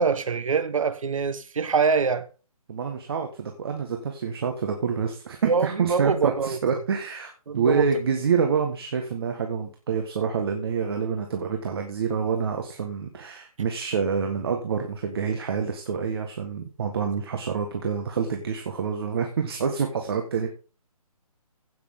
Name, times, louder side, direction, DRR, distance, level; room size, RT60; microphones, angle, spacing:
voice 1, 0.0-2.3 5.4-6.6 7.5-7.9, right 5 dB, 60° right, 1.3 m, -24 dB
voice 2, 2.7-20.5, right 6 dB, 40° right, 1.6 m, -27 dB
15.5 x 6.7 x 3.7 m
hypercardioid pair, 165°, 19 cm